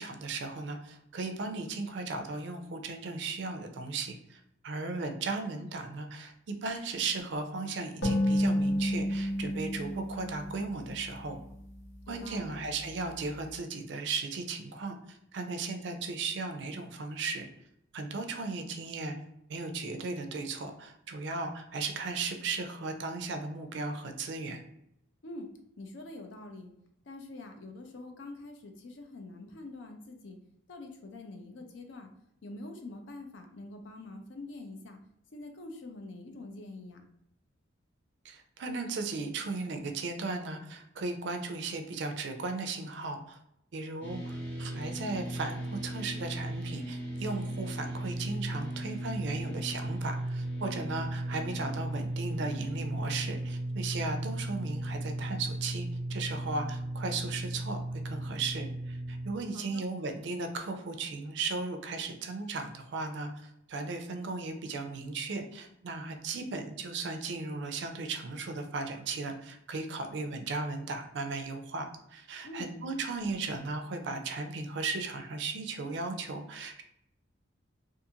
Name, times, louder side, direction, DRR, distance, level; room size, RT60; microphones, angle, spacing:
voice 1, 0.0-6.3 6.6-11.4 12.1-17.5 17.9-19.1 19.5-24.6 38.2-43.4 43.7-76.8, right 3 dB, 60° right, 6 dB, 0.4 m, -36 dB
sound 1, 8.0-11.5, equal, 80° left, 0.9 m, -30 dB
voice 2, 12.1-12.6 25.2-25.5 25.8-26.7 27.1-30.4 30.7-32.1 32.4-35.0 35.3-37.0 59.5-59.8 72.4-72.7, left 2 dB, 65° left, 5 dB, 0.5 m, -45 dB
sound 2, 44.0-59.3, right 1 dB, 10° left, 0.6 m, -36 dB
2.5 x 2.5 x 2.7 m, 0.79 s
head